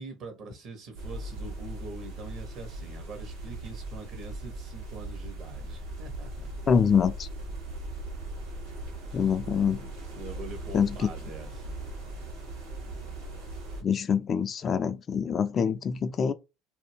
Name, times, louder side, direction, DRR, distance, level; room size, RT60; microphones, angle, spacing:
voice 1, 0.0-6.7 9.0-9.3 10.1-11.8, right 3 dB, 55° right, 1.1 m, -44 dB
sound 1, 1.0-13.8, right 1 dB, 80° right, 1.3 m, -39 dB
voice 2, 6.7-7.3 9.1-9.8 10.7-11.1 13.8-16.3, left 7 dB, 40° left, 0.3 m, -25 dB
2.5 x 2.2 x 3.3 m
hypercardioid pair, 65°, 0 cm